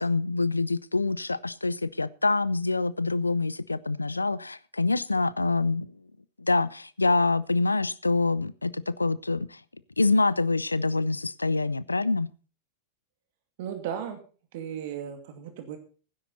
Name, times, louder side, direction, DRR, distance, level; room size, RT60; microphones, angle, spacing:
voice 1, 0.0-5.9 6.4-9.6 10.0-12.3, left 3 dB, 80° left, 0.5 m, -26 dB
voice 2, 13.6-14.2 14.5-15.8, right 9 dB, 50° right, 2.4 m, -35 dB
16.5 x 10.0 x 4.2 m
figure-of-eight pair, 90°, 0 cm